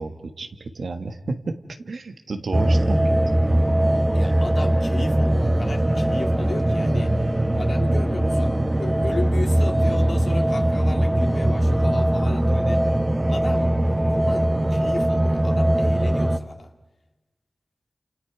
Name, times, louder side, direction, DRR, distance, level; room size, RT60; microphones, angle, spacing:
voice 1, 0.0-1.6 1.8-3.2, right 3 dB, 90° right, 6 dB, 1.6 m, -31 dB
sound 1, 2.5-16.4, right 1 dB, 25° right, 1.0 m, -20 dB
voice 2, 4.1-7.1 7.6-12.9 13.2-16.7, left 3 dB, 75° left, 3 dB, 2.0 m, -35 dB
29.5 x 28.0 x 4.9 m, 1.1 s
wide cardioid pair, 65°, 0 cm